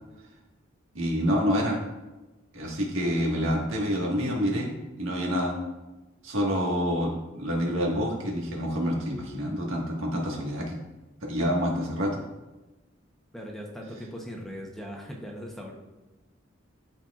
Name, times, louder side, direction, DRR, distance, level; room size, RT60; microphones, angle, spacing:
voice 1, 0.9-1.8 2.5-4.7 5.0-5.5 6.2-10.8 11.2-12.2, equal, 85° right, -1 dB, 1.6 m, -27 dB
voice 2, 13.3-15.7, equal, ahead, -1 dB, 0.8 m, -39 dB
13.0 x 4.3 x 2.4 m, 1.1 s
head